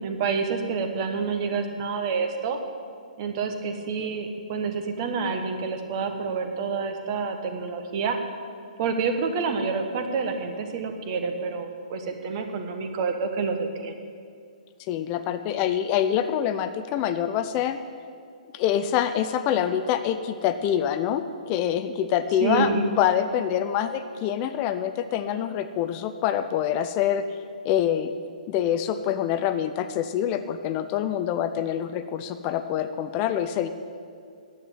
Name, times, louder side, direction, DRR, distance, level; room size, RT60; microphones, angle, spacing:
voice 1, 0.0-2.6 3.2-8.2 8.8-13.9 22.4-22.8, right 5 dB, 40° right, 6 dB, 1.4 m, -28 dB
voice 2, 14.8-17.8 18.5-28.1 28.5-33.7, left 10 dB, 30° left, 10 dB, 0.5 m, -26 dB
9.9 x 8.1 x 9.1 m, 2.3 s
hypercardioid pair, 145°, 4 cm